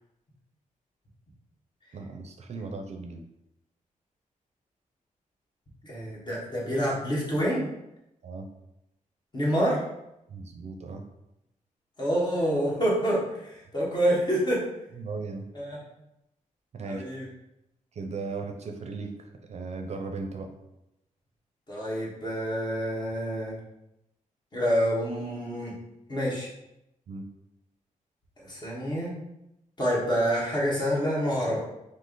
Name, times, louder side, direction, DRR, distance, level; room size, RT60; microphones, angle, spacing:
voice 1, 1.9-3.2 8.2-8.5 10.3-11.0 15.0-15.5 16.7-17.0 17.9-20.5 27.1-27.3, right 3 dB, 50° right, 4 dB, 0.5 m, -37 dB
voice 2, 5.8-7.6 9.3-9.8 12.0-14.6 15.5-15.8 16.8-17.3 21.7-23.6 24.5-25.7 26.1-26.5 28.4-29.1 29.8-31.6, equal, 30° left, -5 dB, 1.4 m, -27 dB
5.2 x 2.1 x 3.9 m, 0.87 s
wide cardioid pair, 135°, 14 cm